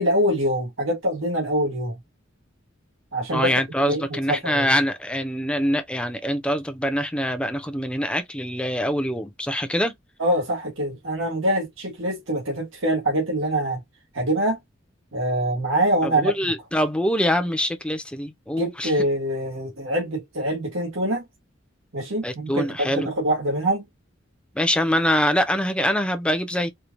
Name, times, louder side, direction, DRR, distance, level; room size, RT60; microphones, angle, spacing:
voice 1, 0.0-2.0 3.1-3.5 3.9-4.7 10.2-13.8 14.1-14.6 15.1-16.3 18.6-21.2 21.9-23.9, right 1 dB, 85° right, 1.5 m, -24 dB
voice 2, 3.3-9.9 16.0-18.9 22.2-23.1 24.5-26.7, equal, 5° left, 0.6 m, -24 dB
4.4 x 2.2 x 2.6 m
head